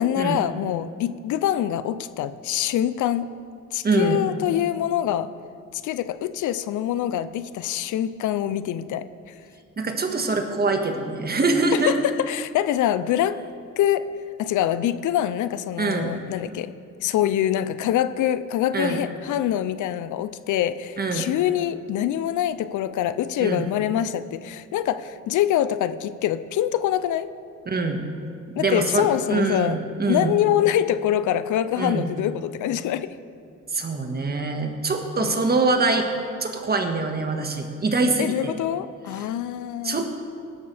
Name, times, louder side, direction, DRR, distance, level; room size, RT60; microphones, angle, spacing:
voice 1, 0.0-3.3 3.7-5.3 5.7-9.3 11.7-13.4 13.8-14.0 14.4-16.7 17.0-27.3 28.6-29.8 30.1-33.1 35.2-35.4 38.2-40.2, left 11 dB, 75° left, 13 dB, 0.6 m, -25 dB
voice 2, 3.8-4.2 9.8-11.9 15.8-16.1 18.7-19.0 21.0-21.3 23.4-23.6 27.7-28.0 28.5-30.4 31.8-32.1 33.7-36.1 36.4-38.5 39.8-40.2, right 3 dB, 30° right, 4 dB, 1.6 m, -24 dB
17.5 x 12.5 x 3.4 m, 2.5 s
cardioid pair, 90°, 30 cm